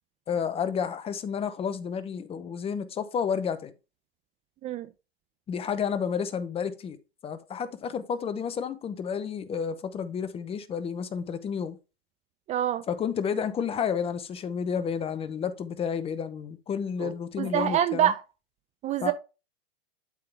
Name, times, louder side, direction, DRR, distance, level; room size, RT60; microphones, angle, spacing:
voice 1, 0.3-3.7 5.5-7.0 7.2-11.8 12.9-18.1 19.0-19.1, left 7 dB, 20° left, 0.7 m, -31 dB
voice 2, 12.5-12.8 17.0-18.2 18.8-19.1, right 11 dB, 25° right, 0.5 m, -26 dB
11.5 x 3.8 x 3.3 m
hypercardioid pair, 120°, 31 cm